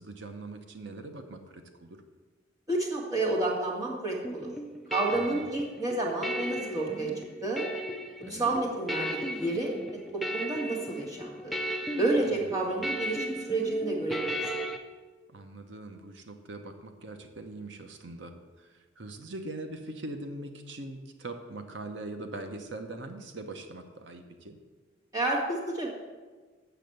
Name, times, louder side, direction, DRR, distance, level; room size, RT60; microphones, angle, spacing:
voice 1, 0.0-2.0 5.1-5.4 8.3-8.5 12.3-12.9 15.3-24.6, right 2 dB, 65° right, 6 dB, 0.8 m, -42 dB
voice 2, 2.7-4.5 4.9-7.6 8.3-9.7 10.1-11.6 11.9-14.5 25.1-25.9, right 2 dB, 20° right, -3 dB, 1.9 m, -30 dB
sound 1, 4.2-14.8, equal, ahead, 0.5 m, -36 dB
6.9 x 6.5 x 7.8 m, 1.4 s
head